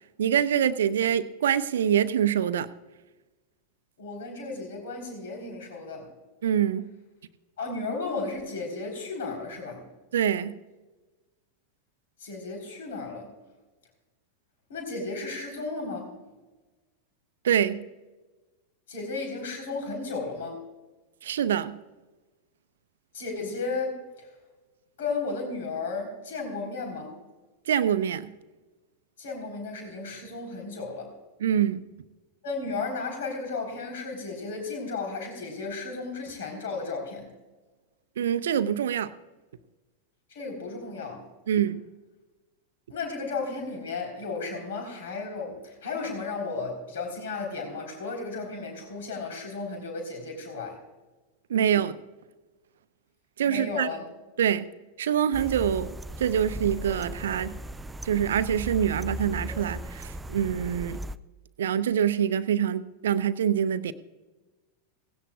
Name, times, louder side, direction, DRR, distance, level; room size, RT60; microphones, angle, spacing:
voice 1, 0.2-2.7 6.4-6.9 10.1-10.5 17.4-17.8 21.2-21.8 27.7-28.3 31.4-31.8 38.2-39.1 41.5-41.8 51.5-52.0 53.4-53.9 54.4-54.7 55.0-57.6 58.0-61.0 61.6-63.9, right 9 dB, 60° right, 15 dB, 0.6 m, -25 dB
voice 2, 4.0-6.1 7.6-9.8 12.2-13.3 14.7-16.1 18.9-20.6 23.1-24.3 25.0-27.1 29.2-31.1 32.4-37.3 40.3-41.2 42.9-50.8 53.4-54.1, left 3 dB, 60° left, 2 dB, 4.0 m, -34 dB
sound 1, 55.3-61.2, equal, 10° right, 0.4 m, -37 dB
18.0 x 16.5 x 2.4 m, 1.2 s
figure-of-eight pair, 90°, 0 cm